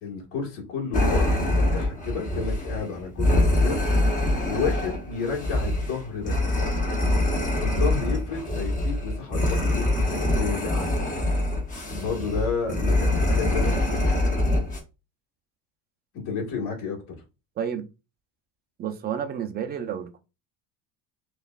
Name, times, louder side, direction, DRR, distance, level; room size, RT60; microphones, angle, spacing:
voice 1, 0.0-3.9 4.2-6.3 7.6-9.9 10.3-10.9 11.9-14.0 16.1-17.0, left 5 dB, 55° left, 1.8 m, -31 dB
sound 1, 0.9-14.8, left 1 dB, 20° left, 0.9 m, -24 dB
voice 2, 17.6-17.9 18.8-20.2, right 8 dB, 25° right, 0.4 m, -30 dB
5.1 x 2.4 x 2.4 m
cardioid pair, 145°, 40 cm